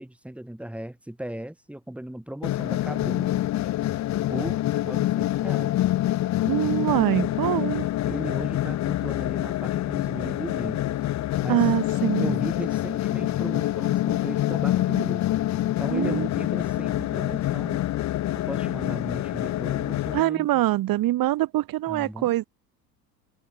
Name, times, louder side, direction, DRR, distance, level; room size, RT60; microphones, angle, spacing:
voice 1, 0.0-3.3 4.3-5.8 8.1-11.0 11.4-11.6 12.2-15.3 15.7-17.8 18.4-20.5 21.9-22.3, right 1 dB, 5° right, 6.6 m, -36 dB
sound 1, 2.4-20.2, left 14 dB, 35° left, 1.3 m, -26 dB
voice 2, 6.5-7.9 11.5-12.4 15.9-16.3 20.1-22.5, right 15 dB, 45° right, 4.6 m, -24 dB
figure-of-eight pair, 70°, 49 cm